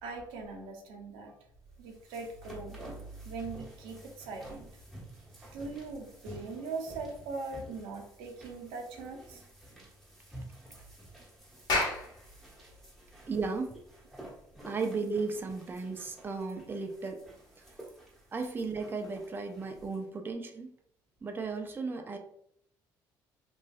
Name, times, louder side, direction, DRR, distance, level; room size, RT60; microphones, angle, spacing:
voice 1, 0.0-1.3 1.8-2.8 3.3-4.7 5.4-9.4, right 3 dB, 85° right, 2 dB, 0.6 m, -41 dB
sound 1, 1.6-20.0, right 1 dB, ahead, 1.1 m, -51 dB
Clapping, 11.5-16.4, left 2 dB, 55° left, 1.0 m, -36 dB
voice 2, 13.3-13.8 14.7-17.2 18.3-20.7 21.2-22.2, right 4 dB, 25° right, 4 dB, 0.4 m, -35 dB
3.0 x 2.6 x 2.3 m, 0.70 s
supercardioid pair, 85°, 8 cm